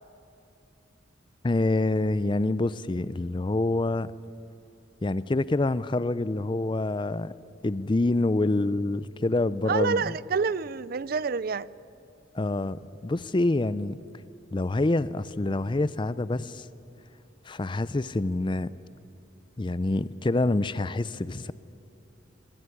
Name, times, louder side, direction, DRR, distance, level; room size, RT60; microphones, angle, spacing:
voice 1, 1.4-4.1 5.0-7.3 7.6-10.0 12.3-14.0 14.5-16.7 17.5-18.7 19.6-21.5, left 2 dB, 25° left, 17 dB, 0.5 m, -26 dB
voice 2, 9.6-11.7, right 5 dB, 50° right, 19 dB, 0.4 m, -27 dB
21.5 x 17.5 x 10.0 m, 2.8 s
head